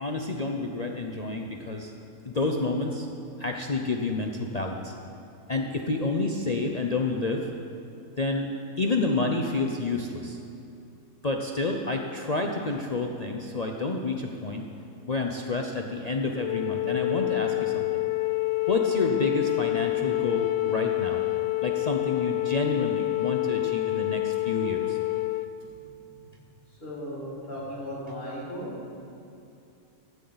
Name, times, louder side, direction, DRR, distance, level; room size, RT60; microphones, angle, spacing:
voice 1, 0.0-1.9 2.2-3.1 3.4-4.9 5.5-7.5 8.2-10.4 11.2-14.7 15.1-18.0 18.7-21.2 21.6-25.0, left 3 dB, 40° left, 1 dB, 0.6 m, -29 dB
Wind instrument woodwind instrument, 16.3-25.5, left 22 dB, 70° left, 0.9 m, -27 dB
voice 2, 26.8-28.7, equal, 85° left, -9 dB, 4.8 m, -36 dB
15.5 x 14.0 x 4.0 m, 2.7 s
omnidirectional pair, 1.5 m